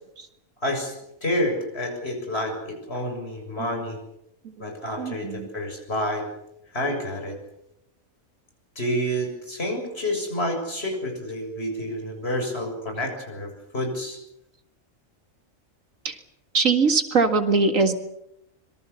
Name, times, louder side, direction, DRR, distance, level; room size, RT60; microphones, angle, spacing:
voice 1, 0.6-0.9 1.2-4.0 4.6-6.3 6.7-7.4 8.8-14.2, equal, 50° left, 3 dB, 7.3 m, -29 dB
voice 2, 5.0-5.5 16.0-16.2 16.5-18.0, right 4 dB, 70° right, 7 dB, 2.4 m, -22 dB
25.5 x 23.5 x 7.1 m, 0.81 s
omnidirectional pair, 1.4 m